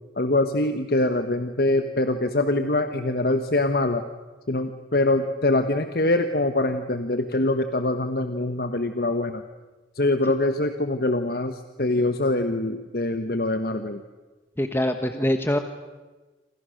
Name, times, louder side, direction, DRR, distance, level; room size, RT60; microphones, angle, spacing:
voice 1, 0.2-4.0 4.5-9.4 10.0-14.0, left 2 dB, 60° left, 8 dB, 1.2 m, -24 dB
voice 2, 14.6-15.6, left 1 dB, 15° left, 7 dB, 1.2 m, -23 dB
28.5 x 26.0 x 6.6 m, 1.2 s
head